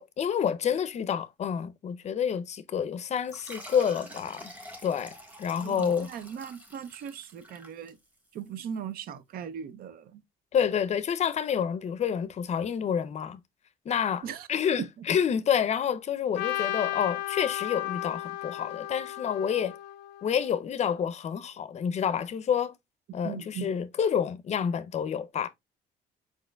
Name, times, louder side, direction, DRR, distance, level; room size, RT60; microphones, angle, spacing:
voice 1, 0.0-4.5 4.8-6.1 10.5-13.4 13.9-14.2 14.5-19.7 20.2-22.7 23.1-25.5, left 8 dB, 40° left, 0.5 m, -28 dB
sound 1, 3.3-8.4, equal, 10° right, 1.2 m, -47 dB
voice 2, 5.6-8.0 8.3-10.2 14.2-14.5 14.8-14.9 23.2-23.7, right 8 dB, 60° right, 0.6 m, -38 dB
Trumpet, 16.3-20.5, left 14 dB, 85° left, 0.5 m, -34 dB
4.8 x 4.3 x 2.2 m
cardioid pair, 110°, 17 cm